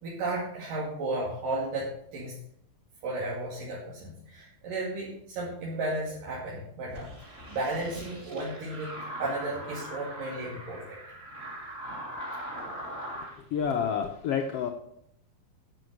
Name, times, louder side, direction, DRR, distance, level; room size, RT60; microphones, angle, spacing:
voice 1, 0.0-2.3 3.0-11.0, right 2 dB, 85° right, -5 dB, 4.0 m, -34 dB
sound 1, 6.9-13.3, equal, 20° right, 2.7 m, -41 dB
voice 2, 13.5-14.7, left 7 dB, 75° left, 4 dB, 1.4 m, -28 dB
11.0 x 7.3 x 6.6 m, 0.72 s
omnidirectional pair, 3.8 m